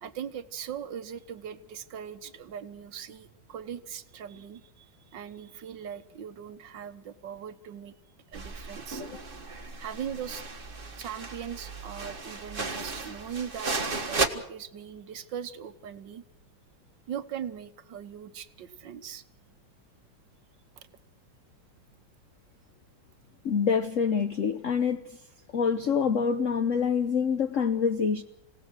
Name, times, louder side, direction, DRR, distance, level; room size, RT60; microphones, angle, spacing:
voice 1, 0.0-8.0 8.3-9.0 9.8-10.6 11.0-16.2 17.1-19.2 20.8-20.9, right 8 dB, 65° right, 11 dB, 1.8 m, -40 dB
sound 1, 8.3-14.3, right 3 dB, 30° right, 1.5 m, -34 dB
voice 2, 23.4-25.2 25.5-28.2, left 6 dB, 50° left, 9 dB, 1.0 m, -26 dB
27.0 x 17.5 x 6.3 m, 0.78 s
omnidirectional pair, 2.3 m